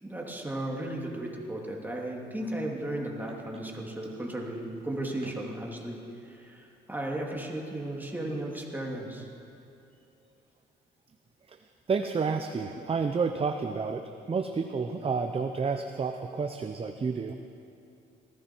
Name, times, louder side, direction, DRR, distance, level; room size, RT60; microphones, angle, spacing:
voice 1, 0.0-9.3, right 1 dB, 10° right, -2 dB, 2.7 m, -35 dB
voice 2, 11.9-14.0 14.3-17.4, right 5 dB, 30° right, 7 dB, 0.7 m, -30 dB
19.5 x 15.0 x 4.5 m, 2.7 s
cardioid pair, 90°, 20 cm